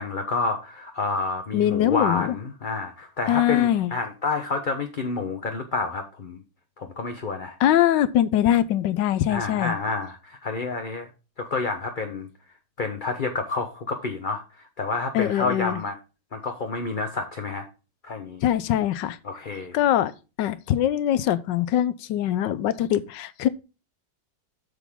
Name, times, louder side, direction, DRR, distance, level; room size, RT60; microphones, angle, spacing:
voice 1, 0.0-6.4 6.8-7.6 9.3-11.1 11.4-12.3 12.8-14.4 14.8-16.0 16.3-17.7 18.0-18.4 19.2-19.8, left 3 dB, 35° left, 0.9 m, -29 dB
voice 2, 1.5-2.4 3.3-3.9 7.6-9.7 15.1-15.8 18.4-19.2 19.7-20.1 20.4-23.5, left 11 dB, 80° left, 1.3 m, -22 dB
8.2 x 6.9 x 3.5 m
omnidirectional pair, 1.9 m